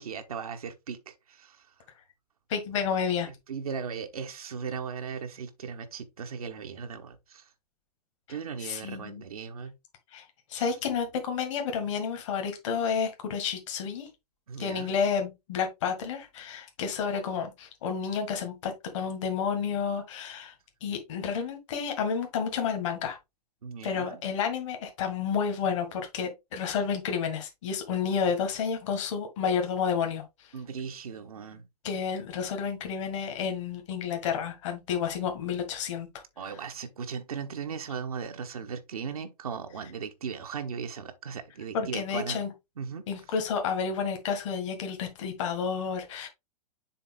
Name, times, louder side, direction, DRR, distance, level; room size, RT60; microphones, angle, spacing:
voice 1, 0.0-1.7 3.5-7.5 8.3-9.7 10.5-10.7 14.5-15.0 23.6-24.2 30.5-31.7 36.4-42.4 42.8-43.0, right 6 dB, 65° right, 1.2 m, -37 dB
voice 2, 2.5-3.3 8.6-9.2 10.1-14.1 14.6-20.5 20.8-23.2 23.8-30.2 31.8-36.1 41.7-42.5 43.1-46.3, left 6 dB, 50° left, 1.9 m, -30 dB
7.0 x 4.0 x 3.7 m
figure-of-eight pair, 105°, 20 cm